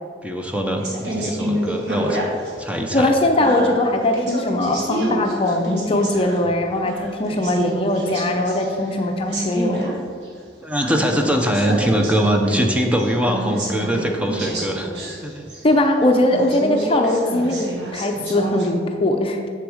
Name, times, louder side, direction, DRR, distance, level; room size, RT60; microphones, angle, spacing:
voice 1, 0.2-2.2 2.6-3.1 10.6-14.9 15.2-15.5, equal, 5° right, 2 dB, 0.7 m, -22 dB
sound 1, 0.8-2.6 3.0-6.5 6.8-9.0 9.3-9.9 10.2-10.3 10.8-15.8 16.3-18.7, right 1 dB, 70° right, 1.7 m, -28 dB
voice 2, 2.9-9.9 15.6-19.4, left 1 dB, 30° left, 4 dB, 0.5 m, -20 dB
7.1 x 6.6 x 4.9 m, 2.1 s
head